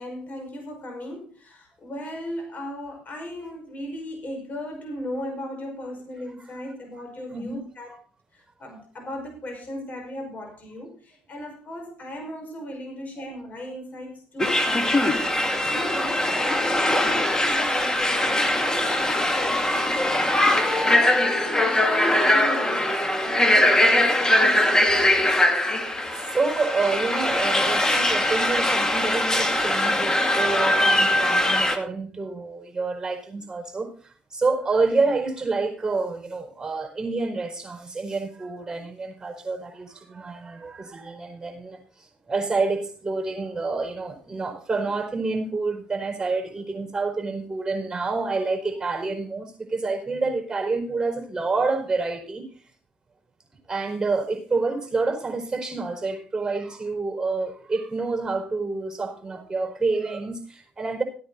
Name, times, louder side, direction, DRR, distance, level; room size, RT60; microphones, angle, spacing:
voice 1, 0.0-8.0 8.3-19.9 20.3-22.9 23.2-24.9, left 1 dB, 40° left, 3 dB, 5.3 m, -36 dB
sound 1, 14.4-31.8, left 1 dB, 15° left, 2.2 m, -21 dB
voice 2, 26.1-33.9 34.3-41.8 42.3-52.4 53.7-61.0, right 3 dB, 20° right, 4 dB, 4.8 m, -28 dB
15.0 x 9.5 x 4.0 m, 0.42 s
supercardioid pair, 70°, 4 cm